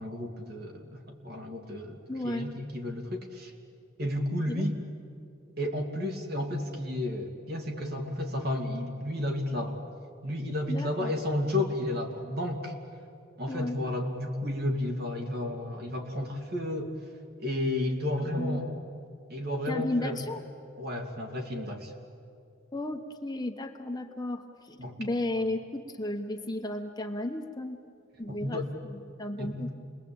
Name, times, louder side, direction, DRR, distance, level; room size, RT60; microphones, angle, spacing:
voice 1, 0.0-3.5 4.0-4.8 5.6-9.8 10.2-12.7 13.4-16.9 17.4-18.8 19.3-20.2 20.8-21.9 24.8-25.0 25.3-25.4 28.3-28.7 29.4-29.7, left 1 dB, 50° right, 2 dB, 2.9 m, -32 dB
voice 2, 2.1-2.5 4.5-4.6 10.7-11.1 13.5-13.8 18.4-18.6 19.7-20.4 22.7-27.8 28.2-28.6 28.9-29.7, left 1 dB, 20° left, 4 dB, 1.1 m, -34 dB
28.5 x 21.5 x 8.8 m, 2.4 s
head